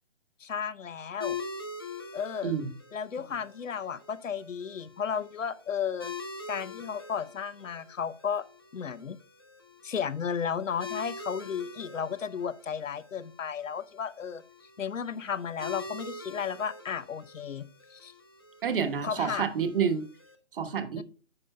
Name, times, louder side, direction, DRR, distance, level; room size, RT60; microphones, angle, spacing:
voice 1, 0.4-1.4 2.1-2.5 2.9-6.1 6.5-8.4 8.7-9.2 9.8-14.4 14.8-18.1 19.0-19.4 21.0-21.1, left 7 dB, 90° left, 0.7 m, -34 dB
sound 1, 1.2-20.3, left 4 dB, 20° left, 0.5 m, -44 dB
voice 2, 18.6-20.0 20.5-21.0, right 7 dB, 45° right, 1.2 m, -28 dB
9.7 x 6.8 x 2.2 m
figure-of-eight pair, 150°, 37 cm